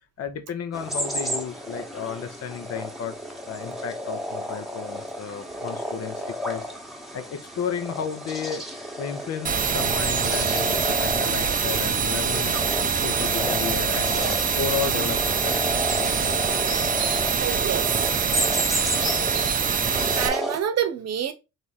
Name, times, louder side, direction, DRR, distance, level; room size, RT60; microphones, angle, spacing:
voice 1, 0.2-3.2 3.4-6.7 7.1-8.6 9.0-12.6 13.0-15.6 16.2-16.5, left 7 dB, 55° left, 0.8 m, -33 dB
sound 1, 0.7-20.6, equal, ahead, 1.1 m, -32 dB
sound 2, 9.4-20.3, right 6 dB, 30° right, 0.5 m, -24 dB
voice 2, 17.4-18.1 18.5-18.7 19.9-21.3, right 9 dB, 55° right, 0.8 m, -28 dB
3.4 x 3.2 x 4.0 m
cardioid pair, 90°, 30 cm